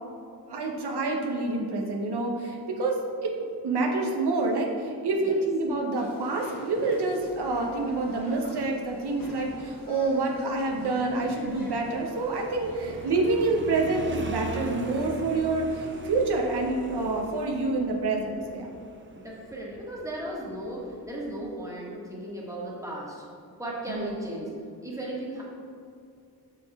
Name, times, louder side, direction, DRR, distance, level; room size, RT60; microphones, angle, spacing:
voice 1, 0.5-3.0 3.2-3.3 3.6-18.7 23.9-24.1, right 3 dB, 85° right, 0 dB, 0.9 m, -27 dB
sound 1, 6.0-16.1, left 1 dB, 55° left, 1.2 m, -47 dB
Motorcycle, 7.2-21.5, right 3 dB, 30° right, 0.6 m, -43 dB
voice 2, 19.1-23.2 23.6-24.5 24.8-25.4, right 1 dB, 10° right, -5 dB, 1.5 m, -36 dB
5.9 x 5.9 x 3.5 m, 2.5 s
wide cardioid pair, 100°, 39 cm